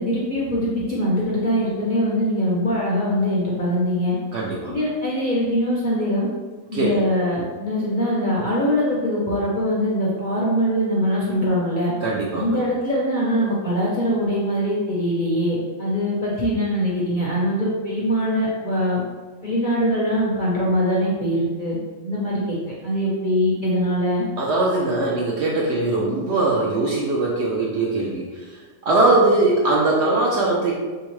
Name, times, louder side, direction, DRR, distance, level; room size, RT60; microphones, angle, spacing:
voice 1, 0.0-4.2 4.7-6.3 6.7-11.9 12.3-19.0 19.4-21.8 22.0-22.4 22.8-24.2, equal, 50° left, -6 dB, 0.6 m, -22 dB
voice 2, 4.3-4.8 6.7-6.9 12.0-12.6 24.4-30.7, right 2 dB, 65° right, -4 dB, 0.7 m, -21 dB
3.4 x 2.8 x 3.1 m, 1.3 s
omnidirectional pair, 1.5 m